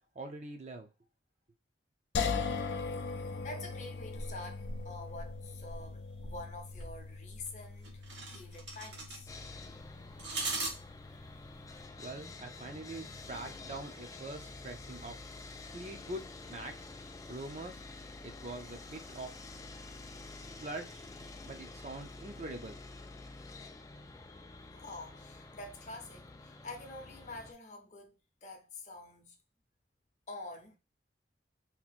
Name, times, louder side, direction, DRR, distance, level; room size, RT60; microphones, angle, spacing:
voice 1, 0.1-0.9 12.0-15.2 15.7-16.9 17.3-17.8 18.2-19.3 20.6-21.1 21.4-22.8, right 2 dB, 40° right, 0.5 m, -43 dB
sound 1, 2.1-15.2, left 5 dB, 80° left, 0.4 m, -41 dB
voice 2, 3.4-8.0 8.3-9.3 11.1-11.3 24.7-29.4 30.3-30.8, left 2 dB, 40° left, 0.7 m, -47 dB
sound 2, 4.0-11.8, right 2 dB, 80° right, 1.3 m, -42 dB
Sawing, 9.3-27.5, left 3 dB, 20° left, 0.3 m, -49 dB
2.9 x 2.6 x 4.1 m
head